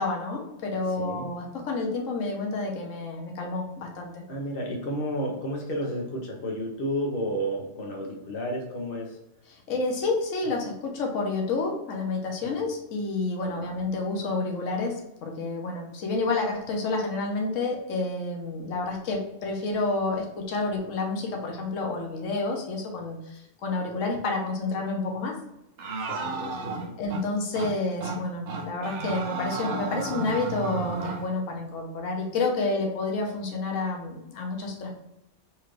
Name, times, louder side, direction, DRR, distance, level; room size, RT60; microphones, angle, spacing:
voice 1, 0.0-4.2 9.5-25.4 27.0-34.9, left 3 dB, 85° left, 1 dB, 1.1 m, -29 dB
voice 2, 1.0-1.3 4.3-9.2 13.4-13.6 26.1-27.0, equal, 50° left, 0 dB, 1.0 m, -32 dB
sound 1, 25.8-27.2 27.6-27.7 28.0-28.2 28.5-31.2, right 4 dB, 65° right, 0.9 m, -32 dB
4.3 x 2.5 x 3.1 m, 0.89 s
omnidirectional pair, 1.3 m